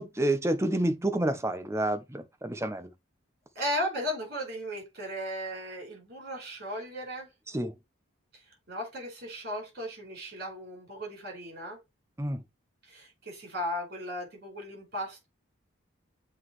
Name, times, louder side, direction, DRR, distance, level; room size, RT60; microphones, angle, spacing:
voice 1, 0.0-2.9 7.5-7.7 12.2-12.4, right 1 dB, 15° right, 0.6 m, -29 dB
voice 2, 3.5-7.3 8.3-11.8 12.8-15.3, equal, 50° right, 4.4 m, -36 dB
7.8 x 3.9 x 3.1 m
head